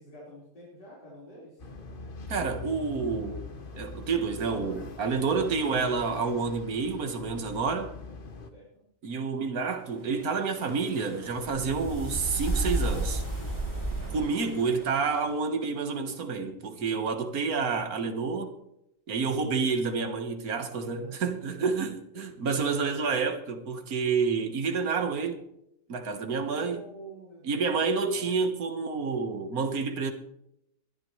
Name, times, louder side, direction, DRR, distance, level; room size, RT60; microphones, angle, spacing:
voice 1, 0.0-1.7 8.5-8.8 20.8-21.1 22.1-22.2 26.4-27.8 28.1-28.5, right 1 dB, 85° left, 5.3 m, -47 dB
sound 1, 1.6-8.5, left 3 dB, 35° left, 1.2 m, -42 dB
voice 2, 2.3-3.5 3.8-7.9 9.0-13.2 14.1-18.6 19.1-25.4 25.9-26.8 27.4-30.1, right 5 dB, 60° right, 1.9 m, -29 dB
sound 2, 10.0-15.3, right 2 dB, 15° left, 5.5 m, -33 dB
22.5 x 10.5 x 3.2 m
omnidirectional pair, 1.8 m